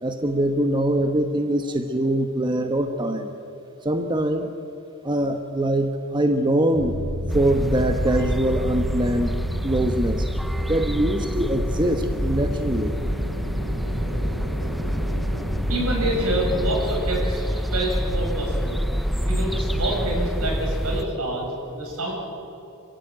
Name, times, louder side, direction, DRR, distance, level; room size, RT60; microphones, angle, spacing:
voice 1, 0.0-3.3 3.8-4.5 5.0-7.0 7.3-9.3 9.6-10.3 10.7-13.0, right 1 dB, 20° right, 6 dB, 1.0 m, -23 dB
sound 1, 6.7-16.7, equal, 45° right, 7.1 m, -31 dB
sound 2, 7.3-21.0, equal, ahead, 0.6 m, -27 dB
voice 2, 15.7-18.8 19.3-22.1, right 1 dB, 75° right, -1 dB, 7.9 m, -27 dB
27.5 x 16.0 x 9.3 m, 2.8 s
head